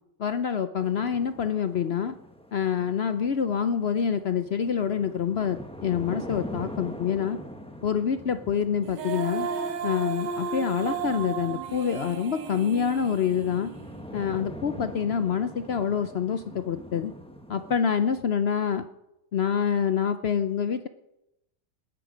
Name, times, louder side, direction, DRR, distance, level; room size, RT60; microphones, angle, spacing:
voice 1, 0.2-2.2 2.5-7.4 7.8-9.5 9.8-13.7 14.1-17.1 17.5-18.9 19.3-20.9, left 7 dB, 75° left, 11 dB, 0.5 m, -26 dB
sound 1, 0.8-17.8, equal, 5° left, 0.9 m, -43 dB
Female singing, 8.8-14.0, right 6 dB, 80° right, 1.8 m, -34 dB
19.0 x 11.0 x 5.1 m, 0.87 s
omnidirectional pair, 1.9 m